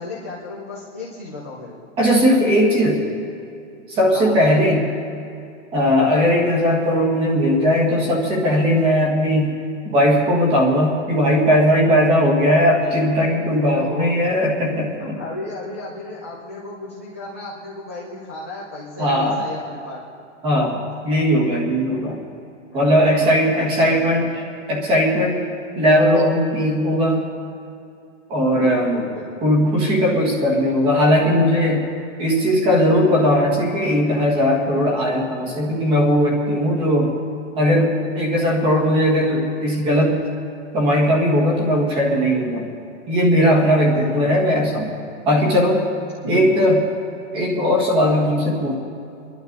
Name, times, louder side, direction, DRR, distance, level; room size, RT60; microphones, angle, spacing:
voice 1, 0.0-1.7 4.1-4.3 13.7-14.3 15.0-20.0 20.6-20.7 23.1-24.2 28.5-29.3 43.8-44.4 46.2-46.7, left 2 dB, 10° left, -9 dB, 0.3 m, -33 dB
voice 2, 2.0-3.0 3.9-4.9 5.7-9.6 9.9-15.2 19.0-19.4 20.4-20.8 21.0-22.2 22.7-24.2 24.7-25.4 25.8-27.2 28.3-29.0 29.4-31.9 32.2-37.2 37.6-40.2 40.7-42.6 43.1-44.9 45.3-45.8 46.3-46.8 47.3-48.7, equal, 15° right, -1 dB, 1.7 m, -18 dB
25.5 x 11.5 x 4.0 m, 2.6 s
supercardioid pair, 180°, 38 cm